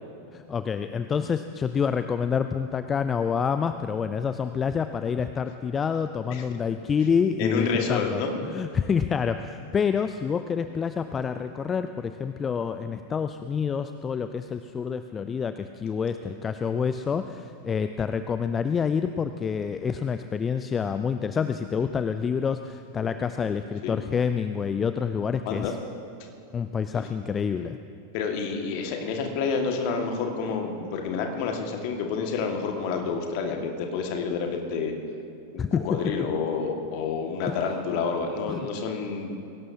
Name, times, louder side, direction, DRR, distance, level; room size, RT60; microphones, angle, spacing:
voice 1, 0.3-25.8 26.5-27.8 35.6-36.1 37.5-37.6 38.5-38.6, left 6 dB, 20° left, 10 dB, 0.4 m, -27 dB
voice 2, 7.4-8.3 23.8-23.9 25.5-25.7 26.9-27.0 28.1-34.9 35.5-39.4, left 5 dB, 45° left, 3 dB, 1.8 m, -29 dB
22.0 x 17.5 x 2.8 m, 2.6 s
figure-of-eight pair, 90°, 0 cm